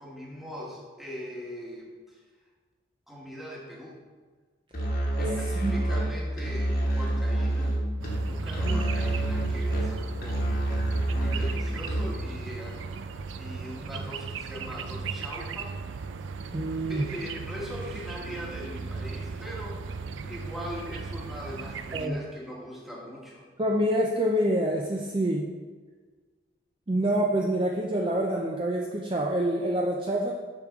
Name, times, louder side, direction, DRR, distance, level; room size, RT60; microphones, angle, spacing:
voice 1, 0.0-2.2 3.1-4.0 5.2-7.8 8.2-10.6 11.1-12.8 13.4-15.7 16.9-23.4, equal, ahead, -4 dB, 1.3 m, -41 dB
Musical instrument, 4.7-12.3, right 1 dB, 50° left, 1.3 m, -28 dB
sound 1, 8.0-22.1, right 5 dB, 90° right, 0.4 m, -37 dB
voice 2, 16.5-17.1 21.9-22.2 23.6-25.5 26.9-30.3, right 1 dB, 25° right, -1 dB, 0.4 m, -26 dB
6.8 x 6.3 x 3.5 m, 1.4 s
head